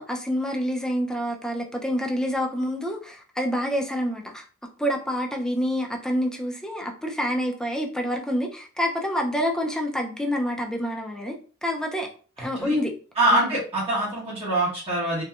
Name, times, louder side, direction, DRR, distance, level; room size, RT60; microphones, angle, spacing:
voice 1, 0.0-4.4 4.8-11.4 11.6-12.1 12.4-12.9 13.3-13.6, equal, 5° left, 1 dB, 0.3 m, -27 dB
voice 2, 13.2-15.2, right 1 dB, 30° right, -7 dB, 1.0 m, -24 dB
2.8 x 2.2 x 2.3 m, 0.38 s
head